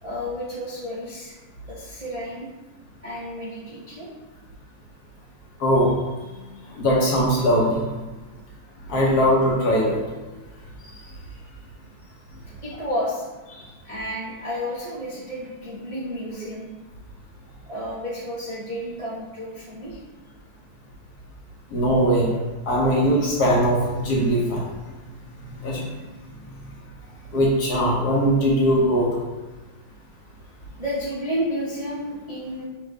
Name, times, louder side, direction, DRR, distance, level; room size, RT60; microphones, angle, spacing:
voice 1, 0.0-1.3 1.7-2.5 3.0-4.1 6.2-6.8 10.9-11.0 12.6-13.3 13.8-16.6 17.7-20.0 30.8-32.6, equal, 45° right, -9 dB, 0.4 m, -31 dB
voice 2, 5.6-5.9 6.8-7.8 8.9-10.0 21.7-22.3 22.7-24.7 25.4-25.8 27.3-29.2, equal, 60° left, -3 dB, 1.2 m, -20 dB
5.5 x 2.5 x 3.3 m, 1.2 s
omnidirectional pair, 2.1 m